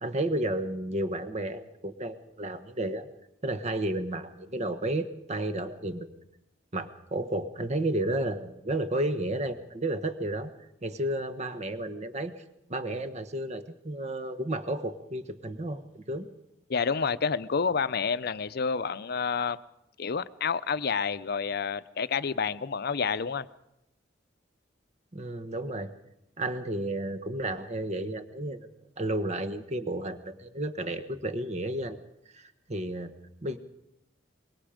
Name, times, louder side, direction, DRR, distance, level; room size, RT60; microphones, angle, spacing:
voice 1, 0.0-3.1 3.4-6.1 6.7-10.5 10.8-12.3 12.7-16.3 25.1-25.9 26.4-28.7 29.0-32.0 32.3-33.1 33.4-33.6, right 1 dB, 40° right, 10 dB, 1.2 m, -32 dB
voice 2, 16.7-19.6 20.0-23.5, left 5 dB, 60° left, 14 dB, 0.6 m, -29 dB
24.0 x 21.5 x 5.1 m, 0.86 s
head